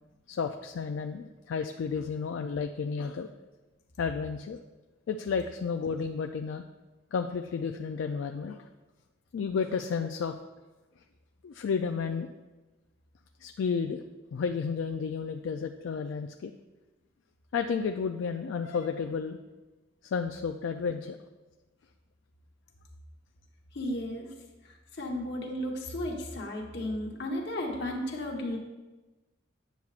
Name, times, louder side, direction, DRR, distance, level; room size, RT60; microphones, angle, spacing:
voice 1, 0.3-3.3 4.0-4.6 5.1-6.6 7.1-8.6 9.3-10.3 11.4-12.3 13.4-14.0 14.3-16.5 17.5-19.4 20.0-21.2, left 5 dB, 75° left, 6 dB, 0.3 m, -32 dB
voice 2, 23.7-24.3 24.6-28.6, left 1 dB, 60° left, 0 dB, 1.2 m, -34 dB
9.2 x 7.0 x 2.4 m, 1.2 s
head